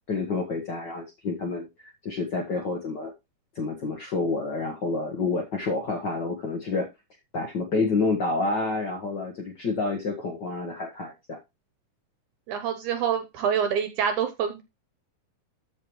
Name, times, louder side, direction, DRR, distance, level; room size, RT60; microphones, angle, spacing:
voice 1, 0.1-3.1 3.5-6.9 7.3-11.4, left 3 dB, 80° left, 1 dB, 0.9 m, -29 dB
voice 2, 12.5-14.6, right 7 dB, 70° right, 7 dB, 2.1 m, -26 dB
13.0 x 5.2 x 3.1 m, 0.23 s
omnidirectional pair, 4.1 m